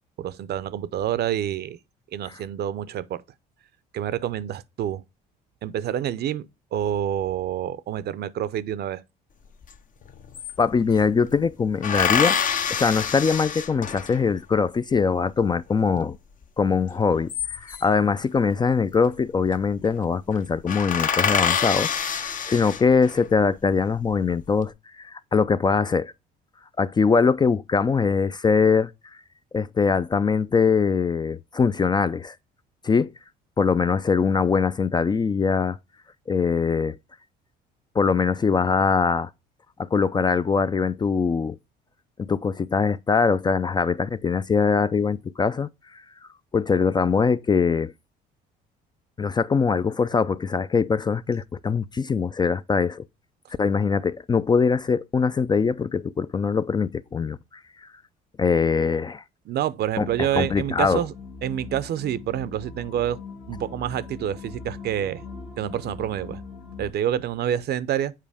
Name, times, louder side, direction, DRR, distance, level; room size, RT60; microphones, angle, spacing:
voice 1, 0.2-1.8 2.1-3.2 3.9-5.0 5.6-9.0 59.5-61.1 61.4-63.2 63.5-65.2 65.6-66.4 66.8-68.1, right 10 dB, 55° right, 0.6 m, -27 dB
sound 1, 9.7-9.8 10.0-11.1 11.8-14.3 17.0-18.0 19.2-19.5 19.8-20.0 20.3-20.4 20.7-23.2 23.8-24.5, left 7 dB, 45° left, 0.7 m, -26 dB
voice 2, 10.6-12.4 12.7-16.2 16.6-26.1 26.8-28.9 29.5-32.4 32.8-33.1 33.6-35.8 36.3-37.0 37.9-39.3 39.8-41.6 42.2-45.7 46.5-47.9 49.2-53.0 53.6-57.4 58.4-59.2 60.0-61.0, left 5 dB, 20° left, 0.3 m, -22 dB
sound 2, 60.0-66.9, left 4 dB, 80° left, 1.6 m, -40 dB
7.4 x 4.5 x 3.4 m
supercardioid pair, 85°, 20 cm